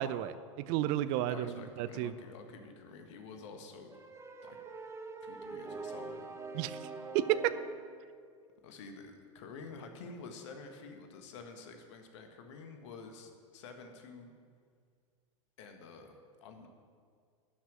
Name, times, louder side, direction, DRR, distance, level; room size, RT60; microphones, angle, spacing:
voice 1, 0.0-2.1 6.5-6.8 7.1-7.5, right 12 dB, 45° right, 14 dB, 0.6 m, -32 dB
voice 2, 1.3-4.0 4.4-4.6 5.2-6.3 8.6-14.3 15.6-16.1 16.4-16.7, left 4 dB, 60° left, 5 dB, 1.6 m, -49 dB
sound 1, 3.9-7.9, right 4 dB, 15° right, 1.1 m, -44 dB
12.5 x 6.1 x 9.0 m, 2.1 s
figure-of-eight pair, 90°, 17 cm